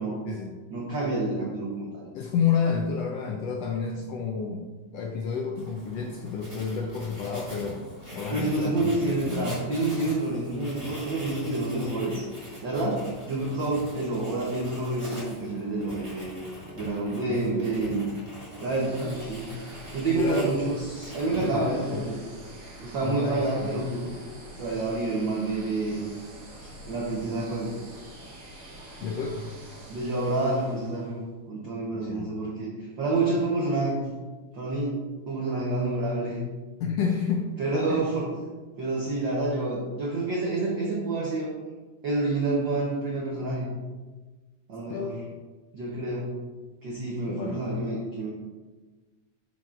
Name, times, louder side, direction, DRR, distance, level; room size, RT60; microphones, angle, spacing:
voice 1, 0.7-2.1 8.3-12.2 12.6-16.3 16.7-18.1 18.6-19.5 19.9-22.2 22.8-24.1 24.6-26.0 26.6-27.7 29.9-31.2 31.5-34.1 34.5-35.0 35.3-36.4 37.6-38.3 38.8-41.6 42.0-43.7 44.7-45.1 45.7-46.3 46.8-48.3, right 2 dB, 70° right, -3 dB, 1.0 m, -28 dB
voice 2, 2.1-4.7 4.9-7.8 8.1-9.6 11.8-12.0 17.2-17.4 20.1-20.6 21.4-22.1 23.0-23.9 29.0-29.5 31.9-32.3 34.6-34.7 36.8-37.5 37.9-38.1 44.9-45.2 47.3-47.6, left 6 dB, 80° left, 1 dB, 1.4 m, -30 dB
Writing, 5.6-21.8, equal, 15° right, 1.0 m, -43 dB
sound 1, 18.5-31.2, right 1 dB, 45° right, 1.5 m, -46 dB
8.8 x 6.0 x 2.5 m, 1.3 s
omnidirectional pair, 3.4 m